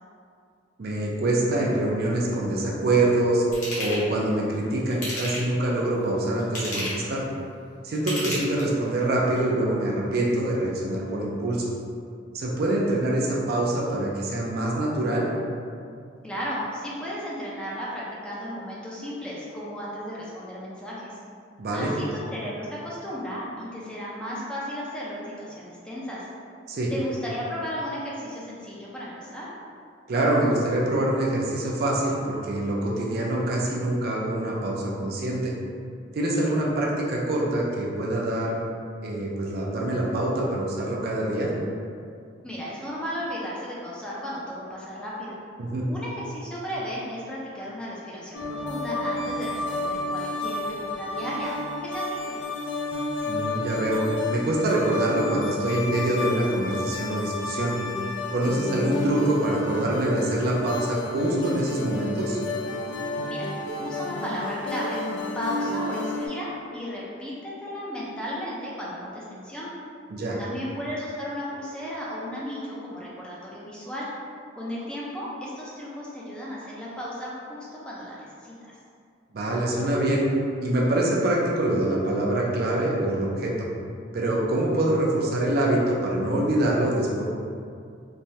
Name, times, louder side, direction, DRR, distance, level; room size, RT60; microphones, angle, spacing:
voice 1, 0.8-3.4 3.8-7.2 7.8-11.7 12.3-15.3 21.6-21.9 26.7-26.9 30.1-35.6 36.1-38.5 39.0-41.5 45.6-45.8 53.2-54.0 54.3-57.7 58.3-62.4 70.1-70.4 79.3-80.3 80.6-83.6 84.1-87.2, right 1 dB, 55° right, -3 dB, 0.4 m, -25 dB
Ratchet pawl / Tools, 3.5-4.0 4.9-5.6 6.4-7.1 7.9-8.9 9.4-9.5, left 1 dB, 45° left, 0.9 m, -31 dB
voice 2, 16.2-21.2 21.7-26.2 26.9-29.5 42.4-45.4 45.9-52.4 63.3-63.5 63.8-69.7 70.4-74.1 74.5-78.7, equal, 5° left, -7 dB, 0.4 m, -34 dB
sound 1, 48.3-66.3, left 2 dB, 80° left, 0.4 m, -31 dB
3.1 x 2.2 x 2.7 m, 2.3 s
head